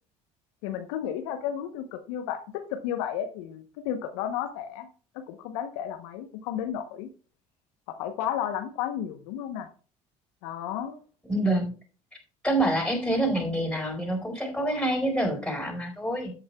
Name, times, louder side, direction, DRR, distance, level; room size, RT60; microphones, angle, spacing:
voice 1, 0.6-4.9 5.1-7.1 7.9-9.7 10.4-11.0, left 9 dB, 80° left, 7 dB, 1.0 m, -33 dB
voice 2, 11.3-11.7 12.4-16.3, right 1 dB, 5° left, 1 dB, 4.5 m, -26 dB
13.0 x 8.6 x 2.3 m, 0.36 s
hypercardioid pair, 70°, 16 cm